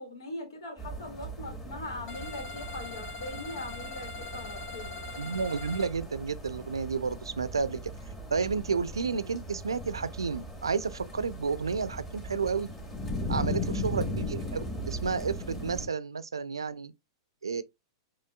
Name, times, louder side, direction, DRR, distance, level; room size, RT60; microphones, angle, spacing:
voice 1, 0.0-5.0 13.4-13.7, left 2 dB, 70° left, 2.2 m, -41 dB
sound 1, 0.8-15.9, equal, 15° left, 2.2 m, -38 dB
sound 2, 2.1-5.9, left 3 dB, 45° left, 2.0 m, -42 dB
voice 2, 5.2-7.8 8.3-12.7 13.3-16.9 17.4-17.6, right 5 dB, 85° right, 0.5 m, -31 dB
6.8 x 3.1 x 2.3 m
hypercardioid pair, 105°, 2 cm